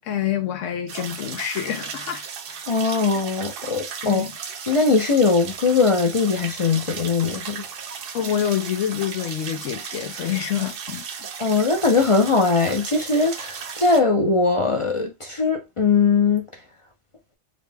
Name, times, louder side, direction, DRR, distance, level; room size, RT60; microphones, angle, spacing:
voice 1, 0.0-2.6 4.0-4.3 8.1-11.3, left 10 dB, 80° left, 1.0 m, -27 dB
sound 1, 0.9-14.0, right 6 dB, 60° right, 0.7 m, -35 dB
voice 2, 2.7-4.3 4.7-7.6 11.4-16.4, left 4 dB, 40° left, 0.5 m, -20 dB
4.0 x 2.1 x 3.3 m
omnidirectional pair, 1.3 m